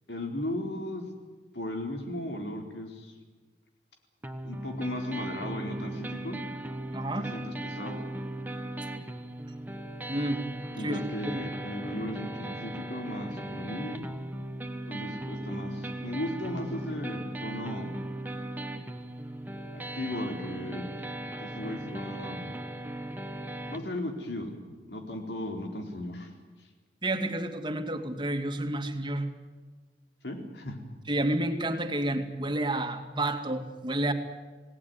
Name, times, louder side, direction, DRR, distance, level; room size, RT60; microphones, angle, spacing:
voice 1, 0.1-1.0 1.5-3.1 4.4-6.4 7.2-8.1 10.7-14.1 14.9-17.9 19.7-20.9 21.4-22.5 23.7-24.6 24.9-26.3 30.2-30.8, left 1 dB, 75° left, 3 dB, 4.2 m, -36 dB
sound 1, 4.2-23.8, right 1 dB, 10° right, 1.5 m, -38 dB
voice 2, 6.9-7.3 10.1-10.4 10.8-11.0 11.2-11.5 27.0-29.3 31.1-34.1, right 1 dB, 25° right, 6 dB, 2.3 m, -30 dB
28.0 x 18.5 x 9.6 m, 1.4 s
head